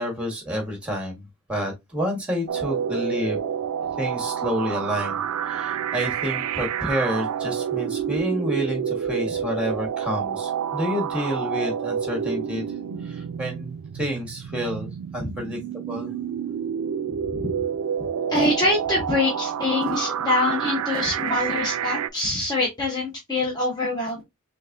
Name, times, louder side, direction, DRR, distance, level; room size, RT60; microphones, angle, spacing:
voice 1, 0.0-3.4 4.0-5.2 5.5-12.6 13.0-15.6 15.9-16.1, equal, 5° right, 1.4 m, -29 dB
sound 1, 2.5-22.1, right 8 dB, 85° right, 0.4 m, -29 dB
voice 2, 18.3-24.2, left 2 dB, 20° left, 1.0 m, -24 dB
3.9 x 3.4 x 2.6 m
head